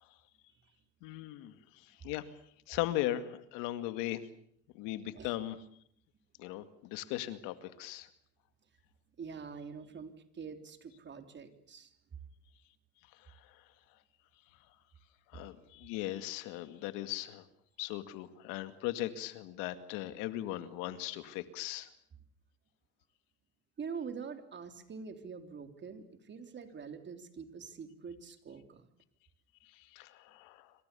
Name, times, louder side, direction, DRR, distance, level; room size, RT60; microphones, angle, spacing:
voice 1, 1.0-2.3 2.7-4.2 4.7-5.6 6.4-8.1 13.1-13.6 15.3-17.5 17.8-21.9 29.6-30.7, left 14 dB, 85° left, 11 dB, 2.2 m, -38 dB
voice 2, 9.2-11.9 23.8-28.9, right 6 dB, 35° right, 7 dB, 3.6 m, -45 dB
27.0 x 25.5 x 7.1 m, 0.66 s
cardioid pair, 110°, 32 cm